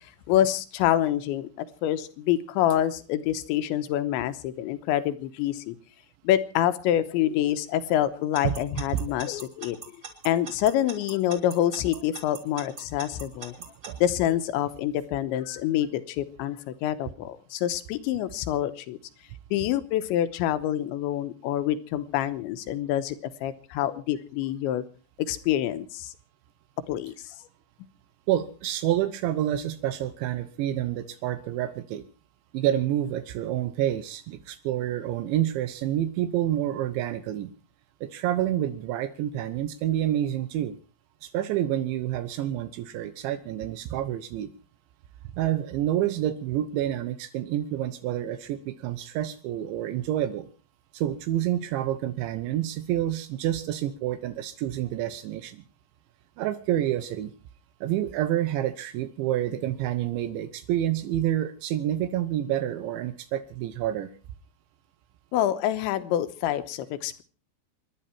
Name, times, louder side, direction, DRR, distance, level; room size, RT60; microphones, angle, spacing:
voice 1, 0.3-5.7 6.2-9.8 10.2-13.6 14.0-19.0 19.5-24.8 25.3-26.1 26.9-27.1 65.3-67.2, left 12 dB, 85° left, 11 dB, 3.3 m, -26 dB
Alarm / Clock, 8.3-13.9, right 4 dB, 30° right, 3.2 m, -40 dB
voice 2, 13.6-14.0 28.3-32.1 32.5-37.5 38.0-40.8 41.2-44.5 45.4-50.5 50.9-55.6 56.4-57.3 57.8-64.1, right 12 dB, 85° right, 11 dB, 3.4 m, -28 dB
26.5 x 11.0 x 4.4 m, 0.37 s
omnidirectional pair, 5.2 m